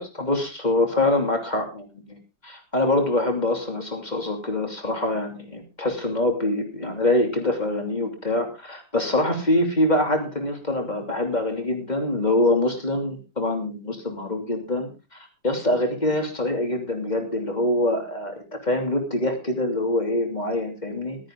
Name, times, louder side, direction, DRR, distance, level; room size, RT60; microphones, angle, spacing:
voice 1, 0.0-2.2 2.4-14.9 15.4-21.2, left 1 dB, 25° left, 3 dB, 3.0 m, -24 dB
15.0 x 13.0 x 3.7 m, 0.30 s
omnidirectional pair, 1.7 m